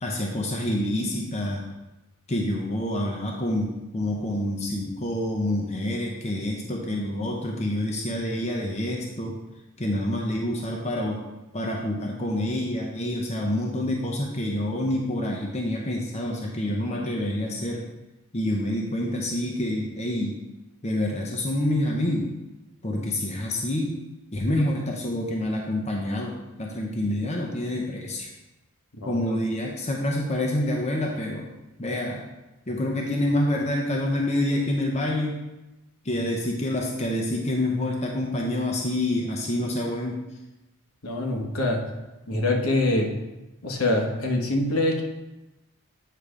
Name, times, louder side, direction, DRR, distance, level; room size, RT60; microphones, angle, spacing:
voice 1, 0.0-1.7 2.3-9.4 9.8-11.2 11.5-17.8 18.3-20.3 20.8-22.3 22.8-23.9 24.3-28.3 29.1-31.5 31.8-32.2 32.7-35.4 36.0-40.2, left 1 dB, 30° left, 0 dB, 0.6 m, -27 dB
voice 2, 41.0-41.9 42.3-43.1 43.6-45.0, left 1 dB, 70° left, 1 dB, 1.1 m, -24 dB
8.3 x 3.4 x 4.9 m, 1.0 s
head